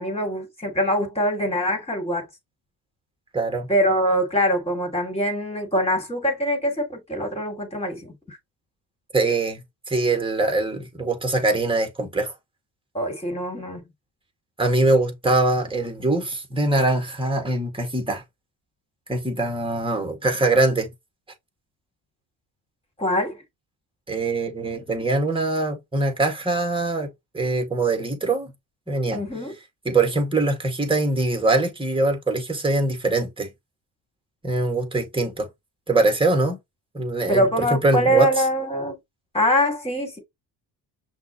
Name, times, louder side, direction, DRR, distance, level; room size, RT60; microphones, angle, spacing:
voice 1, 0.0-2.3 3.7-8.4 12.9-13.8 23.0-23.4 29.1-29.5 37.3-39.0 39.3-40.2, equal, 15° left, 2.7 m, -23 dB
voice 2, 3.3-3.7 9.1-12.3 14.6-18.2 19.1-20.9 24.1-27.1 27.3-28.5 28.9-29.2 29.9-33.5 34.4-35.5 35.9-36.6 36.9-38.3, right 2 dB, 10° right, 1.9 m, -23 dB
5.9 x 2.7 x 3.0 m
cardioid pair, 85°, 42 cm